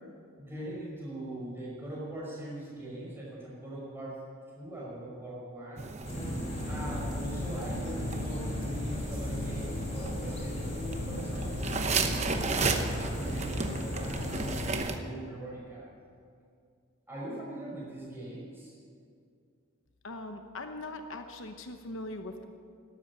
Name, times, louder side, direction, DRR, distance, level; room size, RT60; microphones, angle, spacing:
voice 1, 0.4-4.2 4.6-5.9 6.7-12.7 13.2-15.9 17.1-18.8, right 1 dB, 10° right, -6 dB, 5.5 m, -41 dB
sound 1, 5.8-15.0, right 4 dB, 30° right, 0.9 m, -35 dB
sound 2, 5.9-9.9, left 1 dB, 75° right, 2.2 m, -47 dB
sound 3, 6.0-14.8, left 1 dB, 30° left, 2.8 m, -35 dB
voice 2, 20.0-22.5, left 2 dB, 65° left, 6 dB, 0.9 m, -40 dB
13.0 x 12.5 x 8.5 m, 2.3 s
head